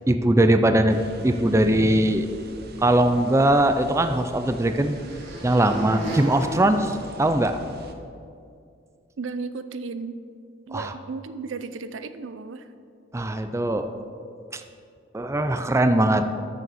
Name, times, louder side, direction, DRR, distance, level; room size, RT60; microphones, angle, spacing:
voice 1, 0.1-2.3 2.8-5.0 5.4-7.6 10.7-10.9 13.1-13.9 14.5-14.6 15.1-16.3, right 1 dB, 15° right, 8 dB, 0.4 m, -21 dB
sound 1, 0.9-7.9, right 2 dB, 55° right, 0.8 m, -43 dB
sound 2, 4.0-7.8, right 1 dB, 70° right, 2.3 m, -37 dB
voice 2, 9.2-10.2 10.7-12.7, right 4 dB, 85° right, 11 dB, 0.5 m, -34 dB
12.5 x 6.8 x 4.2 m, 2.4 s
head